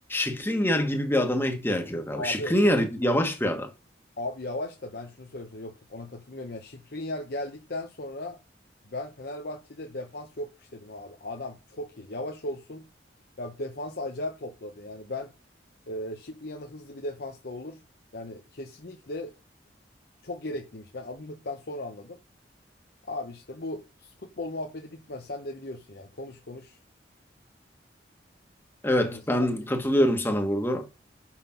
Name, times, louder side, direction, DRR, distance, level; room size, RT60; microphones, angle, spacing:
voice 1, 0.1-3.7 28.8-30.9, equal, 15° left, 1.3 m, -25 dB
voice 2, 2.1-2.6 3.0-3.2 4.2-8.4 8.9-12.9 13.4-15.3 15.9-17.8 18.1-19.3 20.2-22.2 23.1-26.8 29.0-29.2 30.0-30.1, left 1 dB, 60° left, 0.9 m, -37 dB
5.8 x 5.8 x 5.8 m
head